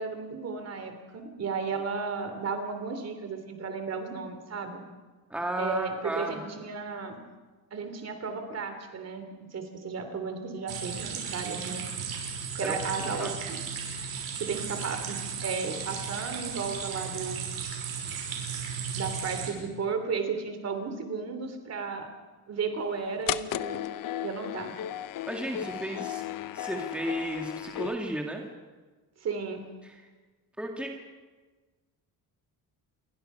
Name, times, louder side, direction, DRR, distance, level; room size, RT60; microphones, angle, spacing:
voice 1, 0.0-4.8 5.6-7.2 7.7-11.8 12.6-13.6 14.4-17.4 18.9-22.1 22.5-23.8 24.2-24.8 29.2-29.7, right 5 dB, 40° right, 7 dB, 3.2 m, -34 dB
voice 2, 5.3-6.5 12.6-12.8 13.2-13.3 25.2-26.2 26.5-28.4 29.8-30.0 30.6-30.9, right 1 dB, 5° right, 1 dB, 2.1 m, -33 dB
sound 1, 10.7-19.5, right 6 dB, 70° right, 6.2 m, -35 dB
sound 2, 23.3-28.0, left 12 dB, 55° left, 0.8 m, -35 dB
28.0 x 23.5 x 5.6 m, 1.3 s
cardioid pair, 165°, 39 cm